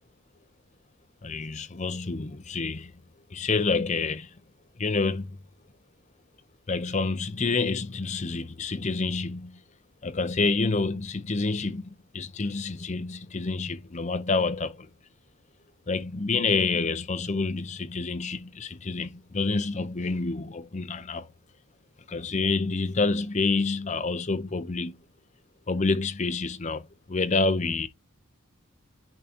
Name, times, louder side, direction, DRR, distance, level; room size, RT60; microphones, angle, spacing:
voice 1, 1.2-2.9 3.3-4.4 4.8-5.4 6.7-9.5 10.0-14.9 15.9-21.3 22.1-25.0 25.7-27.9, left 3 dB, 30° left, 0.6 m, -28 dB
10.0 x 3.8 x 2.8 m
head